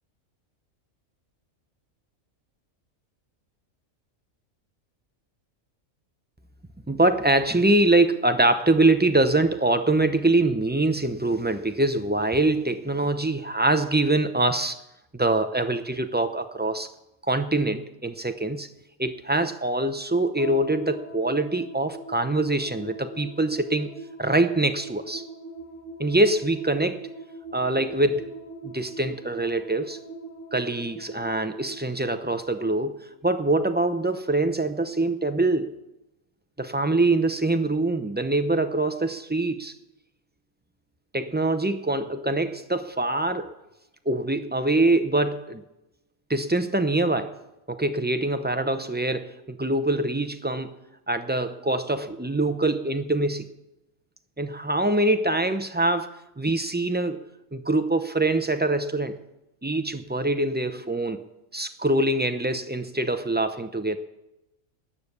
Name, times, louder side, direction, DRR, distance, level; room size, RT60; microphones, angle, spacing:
voice 1, 6.9-14.8 15.1-16.9 17.3-18.7 19.0-23.9 24.2-25.2 26.0-27.1 27.5-28.3 28.6-30.0 30.5-32.9 33.2-35.7 36.6-39.7 41.1-43.5 44.1-45.6 46.3-47.4 47.7-50.7 51.1-53.4 54.4-56.1 56.4-57.2 57.5-59.2 59.6-61.2 61.5-64.0, right 2 dB, 15° right, 8 dB, 0.4 m, -24 dB
sound 1, 20.4-32.9, right 1 dB, 25° left, 6.5 m, -41 dB
15.5 x 10.0 x 6.8 m, 0.92 s
omnidirectional pair, 1.4 m